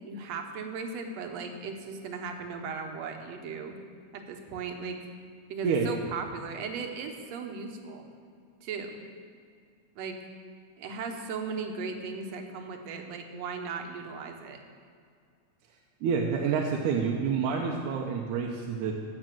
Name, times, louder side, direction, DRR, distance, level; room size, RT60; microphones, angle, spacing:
voice 1, 0.1-3.8 4.1-5.1 5.5-8.1 8.6-9.0 10.0-10.2 10.8-14.6, right 5 dB, 65° right, 4 dB, 2.0 m, -37 dB
voice 2, 16.0-18.9, right 6 dB, 85° right, 0 dB, 2.3 m, -28 dB
15.0 x 6.1 x 7.6 m, 2.1 s
omnidirectional pair, 3.5 m